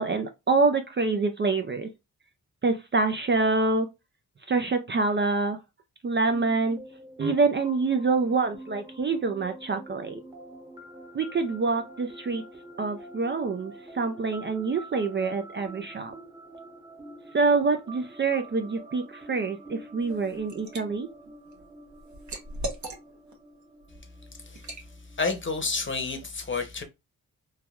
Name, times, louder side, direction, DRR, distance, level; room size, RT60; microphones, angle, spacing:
voice 1, 0.0-1.9 2.6-3.9 4.5-5.6 6.0-6.8 7.2-10.2 11.1-12.4 12.8-16.1 17.3-21.1, right 3 dB, 35° right, 0.4 m, -26 dB
sound 1, 6.3-25.9, right 1 dB, 10° right, 0.9 m, -47 dB
Liquid, 20.0-20.8 21.3-23.4 23.8-24.0 24.6-24.9, right 1 dB, 50° right, 1.0 m, -38 dB
voice 2, 25.2-26.8, left 4 dB, 35° left, 0.9 m, -29 dB
3.2 x 2.2 x 2.4 m
cardioid pair, 75°, 36 cm